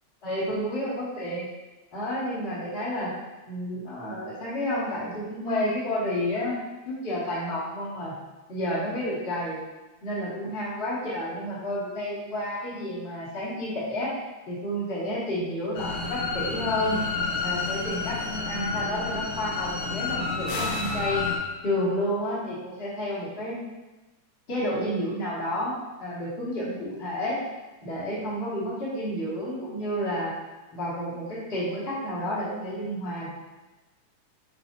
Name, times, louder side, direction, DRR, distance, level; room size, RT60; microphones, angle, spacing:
voice 1, 0.2-1.5 1.9-3.1 3.5-6.6 6.9-8.1 8.5-9.6 10.0-14.1 14.5-17.0 17.4-21.2 21.6-23.6 24.5-27.4 27.8-30.3 30.7-33.3, left 1 dB, 20° left, -9 dB, 2.1 m, -30 dB
sound 1, 15.8-21.4, left 4 dB, 60° left, 1.8 m, -30 dB
sound 2, 20.5-21.1, left 2 dB, 75° left, 2.8 m, -35 dB
9.5 x 4.8 x 2.7 m, 1.1 s
omnidirectional pair, 3.4 m